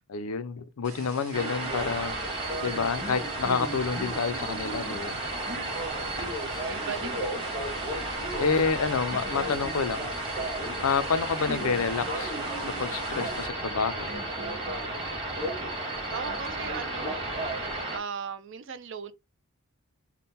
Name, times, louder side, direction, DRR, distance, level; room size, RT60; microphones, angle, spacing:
voice 1, 0.1-2.2 2.6-5.2 7.8-7.9 8.4-10.1 10.8-12.3 12.8-14.1, left 5 dB, 70° left, 0.5 m, -28 dB
sound 1, 0.8-13.5, right 4 dB, 80° right, 1.4 m, -46 dB
sound 2, 1.3-18.0, right 2 dB, 25° right, 1.2 m, -33 dB
sound 3, 1.6-17.8, left 1 dB, 5° left, 0.5 m, -46 dB
voice 2, 5.7-6.2 6.7-7.7 16.1-17.3 17.9-19.1, right 6 dB, 55° right, 0.4 m, -38 dB
3.7 x 2.1 x 4.0 m
head